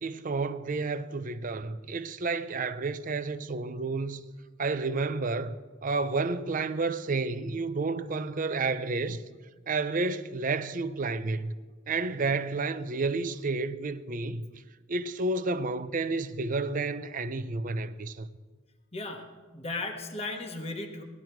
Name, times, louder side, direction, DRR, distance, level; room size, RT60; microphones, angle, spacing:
voice 1, 0.0-4.2 4.6-5.5 5.8-9.2 9.7-11.6 11.9-14.5 14.9-18.3, right 3 dB, 40° right, 0.5 m, -30 dB
voice 2, 18.9-21.0, left 2 dB, 30° left, 1.2 m, -36 dB
18.5 x 12.0 x 4.6 m
head